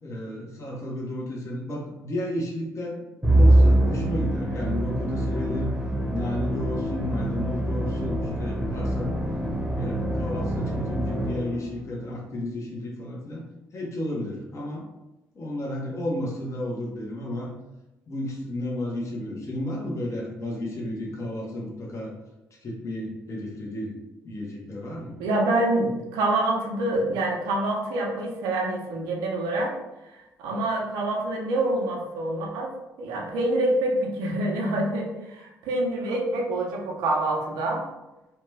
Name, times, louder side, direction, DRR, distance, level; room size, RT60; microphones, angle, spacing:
voice 1, 0.0-3.0 3.2-5.7 6.1-9.2 9.7-13.4 13.7-14.9 15.3-17.5 18.1-22.1 22.6-24.0 24.2-25.1, left 1 dB, 50° left, -3 dB, 0.9 m, -32 dB
Musical instrument, 3.2-11.7, right 1 dB, 10° right, 0.8 m, -24 dB
voice 2, 25.2-29.8 30.0-32.7 33.0-37.8, right 1 dB, 85° right, 0 dB, 0.6 m, -26 dB
2.8 x 2.2 x 3.2 m, 0.98 s
supercardioid pair, 65°, 7 cm